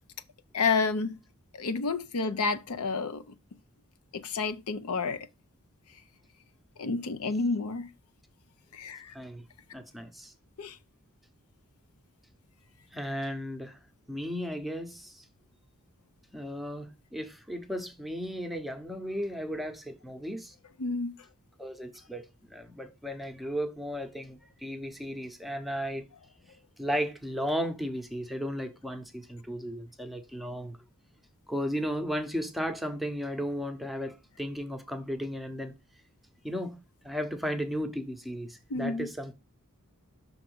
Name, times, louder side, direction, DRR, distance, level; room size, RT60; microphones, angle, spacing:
voice 1, 0.5-1.2 1.5-3.2 4.1-5.3 6.8-7.9 8.7-9.1 10.6-10.8 20.8-21.1 38.7-39.1, left 4 dB, 70° left, 0.6 m, -30 dB
voice 2, 9.1-9.4 9.7-10.3 12.9-13.8 14.1-15.2 16.3-20.5 21.6-26.0 26.8-30.8 31.5-35.7 36.4-36.8 37.0-39.3, equal, ahead, 0.8 m, -35 dB
6.0 x 3.9 x 6.2 m
head